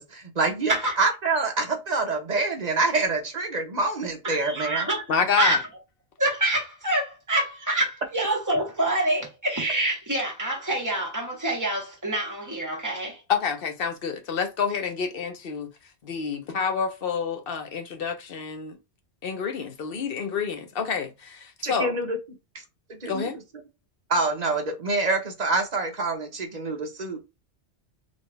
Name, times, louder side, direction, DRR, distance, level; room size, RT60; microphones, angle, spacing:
voice 1, 0.0-4.9 21.6-22.2 22.9-23.3 24.1-27.3, right 3 dB, 40° right, 1.0 m, -26 dB
voice 2, 4.2-5.0 5.4-5.7 6.2-13.2, right 1 dB, 15° right, 1.8 m, -26 dB
voice 3, 5.1-5.6 13.3-15.7 16.0-18.8 19.2-21.9 23.1-23.4, left 6 dB, 60° left, 1.0 m, -28 dB
3.9 x 3.5 x 3.3 m
omnidirectional pair, 1.2 m